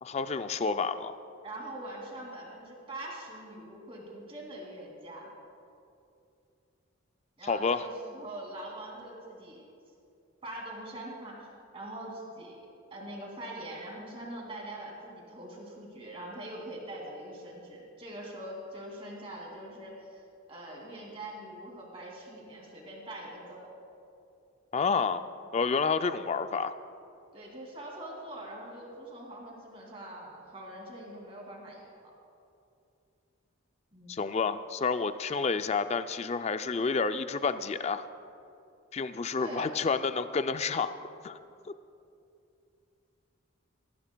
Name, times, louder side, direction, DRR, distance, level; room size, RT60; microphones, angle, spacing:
voice 1, 0.0-1.2 7.5-7.8 24.7-25.2 25.5-26.7 34.1-38.1 38.9-40.9 41.2-41.4, left 5 dB, 30° left, 11 dB, 0.3 m, -29 dB
voice 2, 1.4-5.3 7.4-9.7 10.4-11.5 11.7-12.6 12.9-20.2 20.5-23.7 27.3-32.1 33.9-34.2 39.4-39.7, right 1 dB, 25° right, -2 dB, 2.5 m, -43 dB
19.0 x 15.0 x 2.3 m, 2.6 s
head